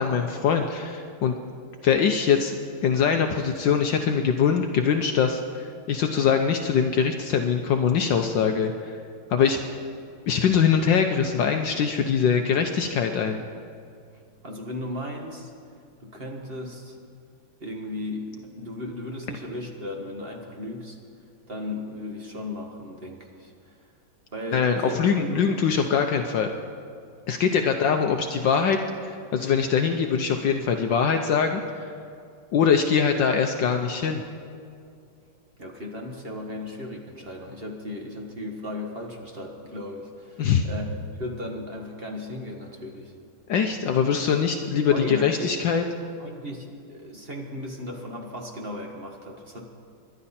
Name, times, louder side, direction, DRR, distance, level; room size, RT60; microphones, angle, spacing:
voice 1, 0.0-1.3 1.8-2.5 2.8-9.0 9.3-9.6 10.3-13.4 24.5-26.5 27.3-28.8 29.0-31.9 32.5-34.2 40.4-40.7 43.5-45.8, left 6 dB, 65° left, 4 dB, 1.4 m, -23 dB
voice 2, 14.4-15.5 16.0-17.0 17.6-21.0 21.5-23.8 24.3-25.5 35.6-40.9 41.2-43.1 44.9-45.6 46.2-49.6, left 1 dB, 30° right, 1 dB, 1.6 m, -36 dB
27.5 x 12.0 x 4.3 m, 2.4 s
omnidirectional pair, 2.3 m